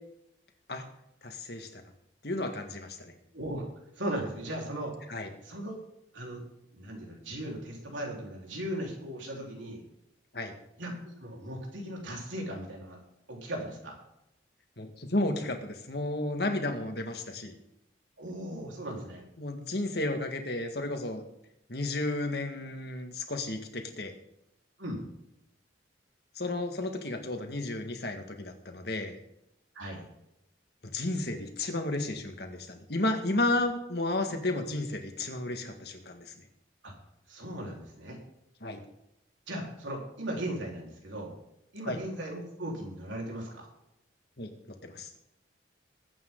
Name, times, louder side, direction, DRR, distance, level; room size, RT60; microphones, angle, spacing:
voice 1, 1.2-1.8 2.2-3.1 5.1-5.3 10.3-10.5 14.8-17.6 19.4-21.2 21.7-24.1 26.4-29.2 30.9-36.4 38.6-38.8 41.9-42.0 44.4-44.5 44.8-45.1, left 2 dB, 55° left, 5 dB, 1.9 m, -32 dB
voice 2, 3.3-3.7 3.9-4.9 5.4-5.8 6.1-6.4 6.7-9.8 10.8-13.0 13.3-14.0 18.2-19.2 24.8-25.0 29.7-30.0 36.8-36.9 37.3-38.2 39.5-41.3 41.7-43.7, right 1 dB, 85° right, -1 dB, 4.3 m, -37 dB
21.0 x 8.9 x 3.9 m, 0.83 s
head